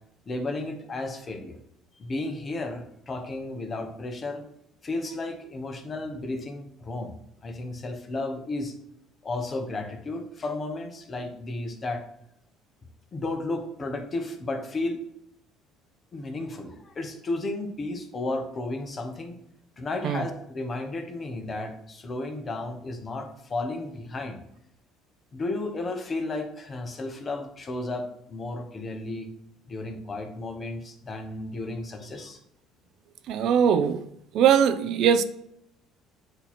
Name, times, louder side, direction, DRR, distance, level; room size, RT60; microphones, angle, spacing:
voice 1, 0.3-1.6 2.0-4.5 4.8-7.2 7.4-8.7 9.2-12.0 13.1-15.0 16.1-19.4 19.8-24.4 25.3-29.3 29.7-32.4, left 2 dB, 35° left, 6 dB, 1.0 m, -33 dB
voice 2, 33.3-34.0 34.3-35.2, right 8 dB, 65° right, 11 dB, 0.4 m, -21 dB
7.9 x 2.9 x 4.2 m, 0.76 s
supercardioid pair, 90°, 0 cm